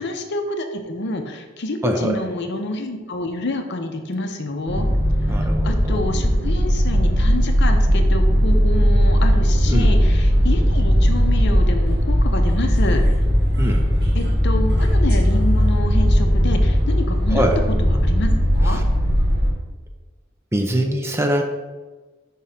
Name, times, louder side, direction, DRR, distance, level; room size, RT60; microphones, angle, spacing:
voice 1, 0.0-4.9 5.3-13.0 14.1-17.4 17.8-18.8, left 1 dB, 55° left, 5 dB, 0.7 m, -28 dB
voice 2, 1.8-2.2 5.3-6.0 9.7-9.9 13.6-14.0 17.3-17.6 18.6-18.8 20.5-21.4, right 1 dB, 15° right, 3 dB, 0.5 m, -23 dB
sound 1, 4.7-19.5, equal, 50° right, 1.4 m, -17 dB
5.5 x 3.7 x 5.6 m, 1.3 s
head